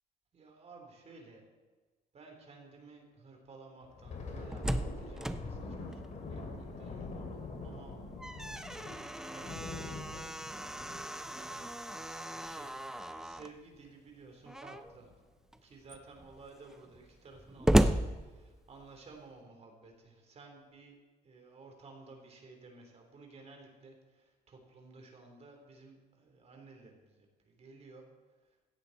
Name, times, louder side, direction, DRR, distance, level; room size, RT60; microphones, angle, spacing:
voice 1, 0.3-1.4 2.1-7.9 8.7-15.1 15.6-21.0 21.2-28.6, right 3 dB, 40° right, 2 dB, 3.7 m, -55 dB
Thunder, 3.8-12.9 13.2-13.5 13.8-14.1 14.7-15.2, left 3 dB, 45° left, 2.9 m, -45 dB
Slam, 4.2-7.0 7.4-7.5 7.9-13.6 14.4-15.0 15.5-15.6 15.8-19.0, right 1 dB, 5° right, 0.6 m, -35 dB
17.0 x 13.0 x 4.2 m, 1.3 s
cardioid pair, 110°, 17 cm